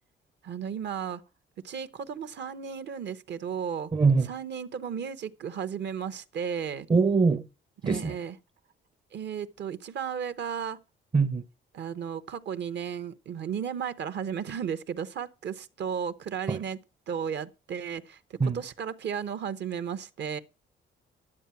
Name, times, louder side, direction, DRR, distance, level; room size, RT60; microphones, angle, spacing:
voice 1, 0.4-1.2 1.6-3.9 4.2-6.9 7.8-8.4 9.1-10.8 11.7-16.8 17.1-20.4, right 7 dB, 60° right, 0.9 m, -34 dB
voice 2, 3.9-4.3 6.9-7.4 7.8-8.2 11.1-11.4 16.5-16.6 18.4-18.6, right 4 dB, 25° right, 0.6 m, -22 dB
11.0 x 7.6 x 5.8 m
cardioid pair, 90°, 20 cm